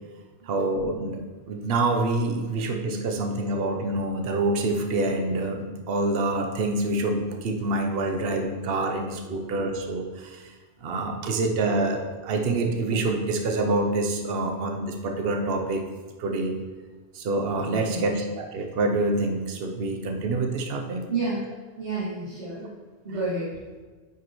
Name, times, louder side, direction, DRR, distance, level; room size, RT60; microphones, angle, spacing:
voice 1, 0.5-1.2 1.5-10.4 10.8-15.8 16.2-16.5 17.1-21.0, right 2 dB, 60° right, 3 dB, 0.9 m, -26 dB
voice 2, 17.6-18.1 21.1-21.5 21.8-22.7 23.0-23.6, right 2 dB, 80° right, -12 dB, 2.5 m, -31 dB
9.4 x 5.1 x 3.1 m, 1.4 s
omnidirectional pair, 1.1 m